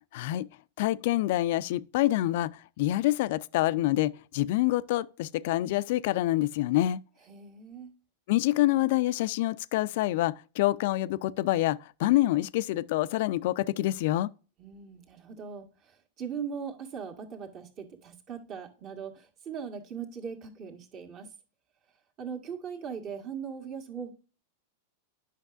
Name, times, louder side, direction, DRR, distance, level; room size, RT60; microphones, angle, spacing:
voice 1, 0.1-0.5 0.8-7.0 8.3-14.3, left 15 dB, 60° left, 0.4 m, -26 dB
voice 2, 7.3-7.9 14.6-21.3 22.2-24.1, right 7 dB, 40° right, 1.8 m, -40 dB
10.0 x 5.9 x 2.5 m
hypercardioid pair, 100°, 0 cm